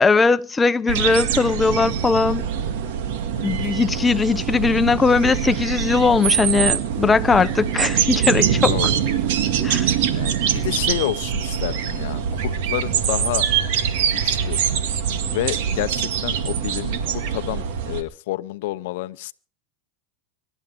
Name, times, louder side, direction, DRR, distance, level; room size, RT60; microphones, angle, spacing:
voice 1, 0.0-2.4 3.4-8.9 9.6-9.9, left 4 dB, 15° left, 0.8 m, -19 dB
sound 1, 0.9-18.0, right 8 dB, 65° right, 2.0 m, -23 dB
voice 2, 8.7-9.0 10.1-13.5 14.1-14.6 15.3-19.3, left 17 dB, 65° left, 0.7 m, -29 dB
25.0 x 12.0 x 3.6 m
hypercardioid pair, 105°, 0 cm